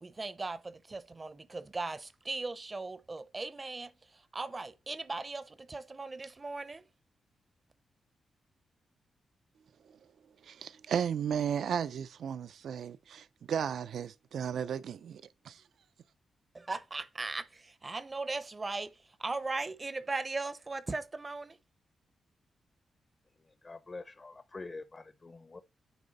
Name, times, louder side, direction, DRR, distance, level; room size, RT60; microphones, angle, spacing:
voice 1, 0.0-6.9 16.5-21.6, right 3 dB, 25° right, 0.5 m, -38 dB
voice 2, 10.4-15.6, right 8 dB, 75° right, 0.3 m, -34 dB
voice 3, 23.6-25.6, left 3 dB, 30° left, 0.5 m, -45 dB
9.4 x 3.3 x 5.2 m
wide cardioid pair, 120°, 0 cm